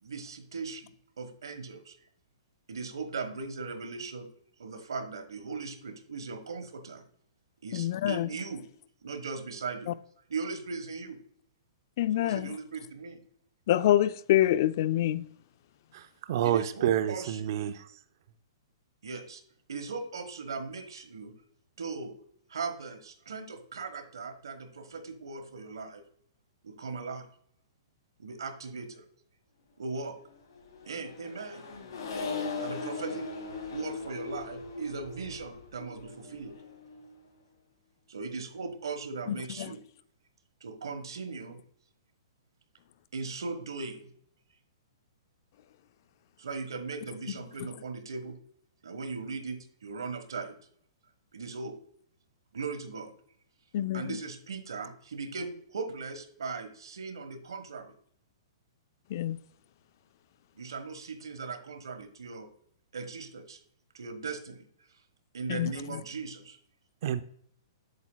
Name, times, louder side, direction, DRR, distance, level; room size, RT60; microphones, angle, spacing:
voice 1, 0.0-2.1 2.7-4.3 4.6-7.0 7.6-8.6 9.0-10.0 10.3-11.2 12.1-13.2 16.4-17.4 19.0-19.4 19.7-21.3 21.8-22.1 22.5-26.0 26.6-27.3 28.2-29.0 29.8-30.1 30.9-31.6 32.6-33.3 33.7-36.6 38.1-39.8 40.6-41.6 43.1-44.1 46.4-48.4 48.8-50.6 51.3-51.7 52.5-53.1 53.9-57.9 60.5-62.5 62.9-63.6 63.9-64.6 65.3-66.6, right 4 dB, 90° right, 1.3 m, -38 dB
voice 2, 7.7-8.3 9.9-10.0 12.0-12.6 13.7-15.3 39.3-39.7 53.7-54.2 59.1-59.4 65.5-66.0, left 12 dB, 50° left, 0.4 m, -26 dB
voice 3, 15.9-17.9 67.0-67.2, right 10 dB, 55° right, 0.5 m, -29 dB
Accelerating revving vroom, 30.5-37.2, left 4 dB, 70° left, 2.9 m, -39 dB
8.1 x 7.3 x 2.2 m
hypercardioid pair, 150°, 2 cm